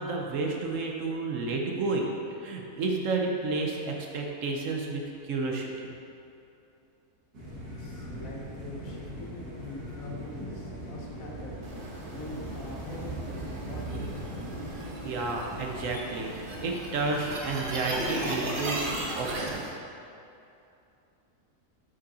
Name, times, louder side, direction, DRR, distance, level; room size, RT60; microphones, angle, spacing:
voice 1, 0.0-2.1 2.4-5.7 14.8-19.7, right 3 dB, 65° right, 1 dB, 1.0 m, -31 dB
sound 1, 7.3-15.9, right 1 dB, 85° right, 2.2 m, -40 dB
voice 2, 7.7-11.6 12.1-14.5, left 2 dB, 65° left, -2 dB, 1.4 m, -44 dB
sound 2, 11.6-19.7, right 1 dB, 40° right, 0.9 m, -36 dB
7.2 x 5.1 x 4.1 m, 2.7 s
omnidirectional pair, 1.6 m